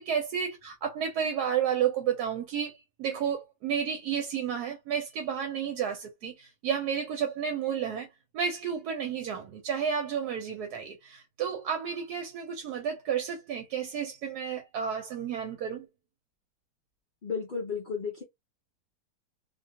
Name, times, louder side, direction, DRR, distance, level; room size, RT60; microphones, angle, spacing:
voice 1, 0.0-8.1 8.3-15.9, right 8 dB, 75° right, 1.1 m, -31 dB
voice 2, 17.2-18.2, left 5 dB, 65° left, 0.4 m, -33 dB
2.7 x 2.2 x 2.8 m
omnidirectional pair, 1.8 m